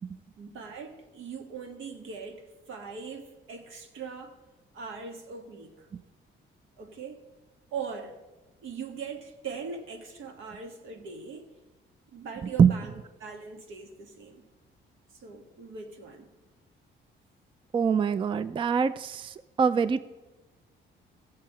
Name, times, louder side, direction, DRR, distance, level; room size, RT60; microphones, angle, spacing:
voice 1, 0.4-4.3 4.7-5.9 6.8-7.2 7.7-8.2 8.6-11.5 12.1-14.5 15.1-16.3, right 5 dB, 80° right, 1.5 m, -41 dB
voice 2, 17.7-20.0, right 6 dB, 25° right, 0.3 m, -24 dB
16.0 x 7.4 x 4.3 m
cardioid pair, 90°, 20 cm